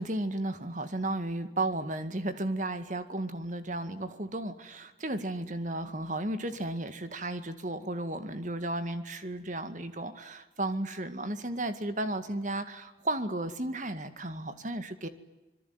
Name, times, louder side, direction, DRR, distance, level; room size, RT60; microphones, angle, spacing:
voice 1, 0.0-15.1, right 1 dB, 45° right, 10 dB, 2.1 m, -34 dB
26.5 x 22.0 x 9.6 m, 1.0 s
head